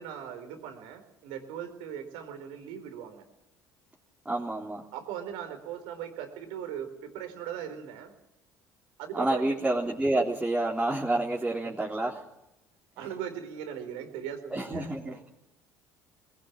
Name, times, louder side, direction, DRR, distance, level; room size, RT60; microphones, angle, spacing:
voice 1, 0.0-3.2 4.9-8.1 9.0-9.5 11.6-11.7 13.0-15.2, right 9 dB, 75° right, 7 dB, 4.3 m, -39 dB
voice 2, 4.3-4.8 9.1-12.2 14.5-15.3, right 2 dB, 10° right, -3 dB, 3.7 m, -29 dB
21.0 x 17.5 x 9.0 m, 0.88 s
hypercardioid pair, 65°, 9 cm